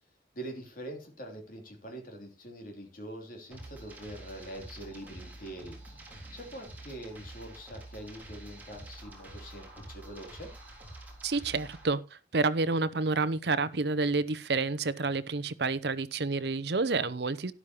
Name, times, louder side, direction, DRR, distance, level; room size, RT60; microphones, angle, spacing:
voice 1, 0.3-5.8 6.3-10.5, right 1 dB, 50° left, 3.0 m, -44 dB
sound 1, 3.5-11.9, right 1 dB, 10° right, 3.6 m, -47 dB
voice 2, 11.2-17.5, right 3 dB, 65° right, 0.7 m, -29 dB
12.5 x 11.0 x 3.0 m
head